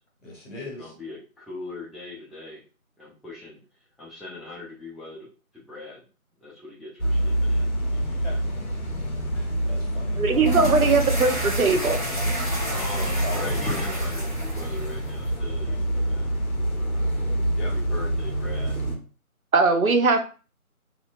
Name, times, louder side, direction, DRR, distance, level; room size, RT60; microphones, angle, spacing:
voice 1, 0.2-0.9 8.2-8.3 9.3-10.2 12.9-13.8 17.5-17.7, left 2 dB, 55° left, -2 dB, 1.3 m, -39 dB
voice 2, 0.8-2.6 3.0-3.6 4.0-6.0 6.4-7.7 8.0-8.4 12.7-16.3 17.6-18.8, left 2 dB, ahead, -5 dB, 0.4 m, -40 dB
sound 1, 7.0-19.0, right 1 dB, 75° left, 0.9 m, -26 dB
voice 3, 10.2-12.0 19.5-20.3, right 4 dB, 70° right, 6 dB, 0.6 m, -20 dB
sound 2, 10.3-15.4, right 1 dB, 35° left, 0.8 m, -31 dB
2.7 x 2.1 x 2.5 m, 0.35 s
figure-of-eight pair, 180°, 43 cm